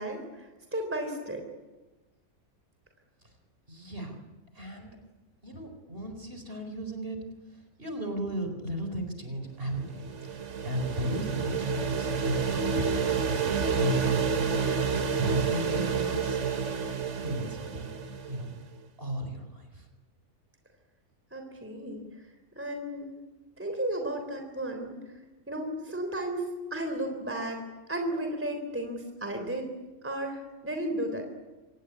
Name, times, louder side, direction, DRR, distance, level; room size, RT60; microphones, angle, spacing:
voice 1, 0.0-1.4 21.3-22.3 22.6-23.2 23.6-25.1 25.5-27.6 27.9-29.8 30.0-31.3, right 1 dB, 10° right, 4 dB, 3.5 m, -34 dB
voice 2, 3.7-4.1 4.5-5.0 5.4-7.2 7.5-12.9 13.4-14.5 14.8-16.4 17.1-17.9 18.3-18.5 19.0-19.9, equal, 40° right, 5 dB, 4.6 m, -35 dB
sound 1, 9.7-18.5, right 6 dB, 55° right, 1.7 m, -29 dB
26.0 x 19.0 x 9.7 m, 1.2 s
omnidirectional pair, 1.6 m